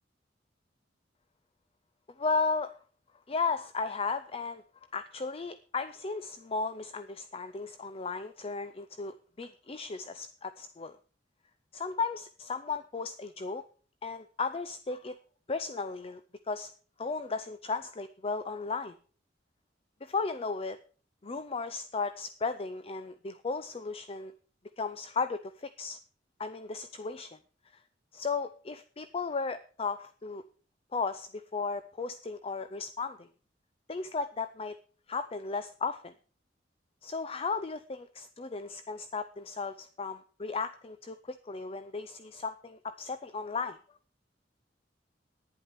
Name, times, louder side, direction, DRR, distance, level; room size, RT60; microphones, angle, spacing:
voice 1, 2.2-2.8 3.3-4.6 4.9-11.0 11.7-13.6 14.0-15.1 15.5-16.2 16.5-16.7 17.0-19.0 20.0-20.8 21.2-24.3 24.8-26.0 26.4-27.4 28.1-30.4 30.9-33.3 33.9-34.8 35.1-36.1 37.0-43.8, left 4 dB, 30° left, 12 dB, 0.6 m, -35 dB
11.0 x 9.9 x 5.8 m, 0.41 s
head